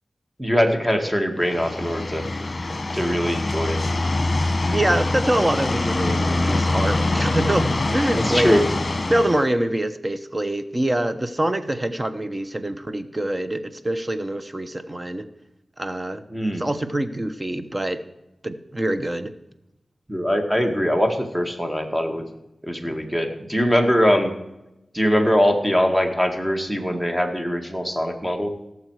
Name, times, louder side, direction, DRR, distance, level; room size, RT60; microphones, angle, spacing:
voice 1, 0.4-2.3 2.9-3.8 8.1-8.6 16.3-16.7 20.1-22.2 22.6-24.3 24.9-28.5, equal, 10° right, 4 dB, 1.9 m, -22 dB
sound 1, 1.4-9.5, left 2 dB, 45° left, 1.3 m, -24 dB
voice 2, 4.7-8.5 9.1-15.3 15.8-16.2 16.6-18.0 18.4-19.3, right 1 dB, 25° right, 10 dB, 1.0 m, -25 dB
17.0 x 7.0 x 4.8 m, 0.93 s
cardioid pair, 60°, 0 cm